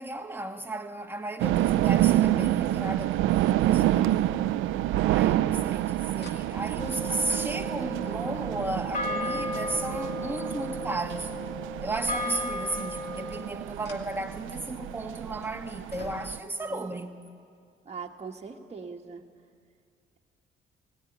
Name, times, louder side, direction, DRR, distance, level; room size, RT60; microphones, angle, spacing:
voice 1, 0.0-4.7 5.1-11.4 11.8-17.2, right 2 dB, 10° right, 1.5 m, -35 dB
sound 1, 1.4-16.4, right 14 dB, 90° right, 0.5 m, -28 dB
sound 2, 6.2-6.4 6.9-11.4 11.7-12.6 13.6-14.8 15.3-15.5 15.9-16.6 17.6-17.7, left 4 dB, 55° left, 2.3 m, -51 dB
sound 3, 6.8-13.4, left 2 dB, 40° left, 2.4 m, -35 dB
voice 2, 16.4-17.0 17.8-19.2, right 5 dB, 30° right, 1.6 m, -41 dB
17.5 x 16.5 x 9.9 m
cardioid pair, 90°, 20 cm